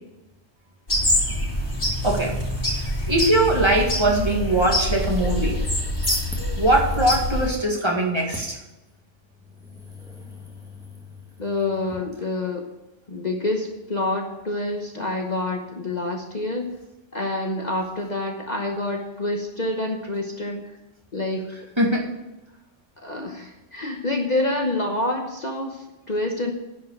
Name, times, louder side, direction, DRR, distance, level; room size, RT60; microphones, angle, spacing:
sound 1, 0.9-7.5, left 1 dB, 60° left, 4.6 m, -25 dB
voice 1, 2.0-2.3 3.1-5.6 6.6-8.6 21.8-22.1, right 1 dB, 20° right, -2 dB, 2.0 m, -21 dB
sound 2, 5.6-12.0, equal, 5° right, 2.0 m, -38 dB
voice 2, 11.4-12.7 13.1-16.7 17.1-20.6 21.1-21.5 23.0-26.5, left 2 dB, 40° left, 2 dB, 1.1 m, -27 dB
10.5 x 5.6 x 8.5 m, 0.99 s
omnidirectional pair, 1.3 m